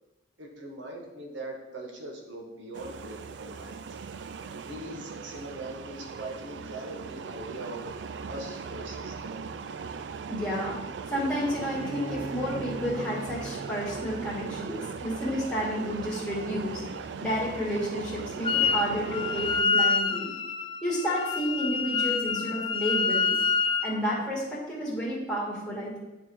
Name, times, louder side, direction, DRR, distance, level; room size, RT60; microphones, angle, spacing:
voice 1, 0.4-3.8 4.7-7.8 8.3-9.4, right 1 dB, 90° right, 1 dB, 1.4 m, -41 dB
sound 1, 2.7-19.6, right 5 dB, 70° right, 0.4 m, -39 dB
voice 2, 10.3-10.8 11.1-16.8 17.2-20.3 20.8-23.3 23.8-26.0, equal, 5° left, -6 dB, 2.0 m, -31 dB
Bowed string instrument, 11.8-15.4, right 2 dB, 50° right, 1.2 m, -43 dB
Wind instrument woodwind instrument, 18.4-18.9 19.1-23.9, left 5 dB, 25° left, 0.4 m, -27 dB
9.2 x 3.4 x 4.6 m, 1.1 s
head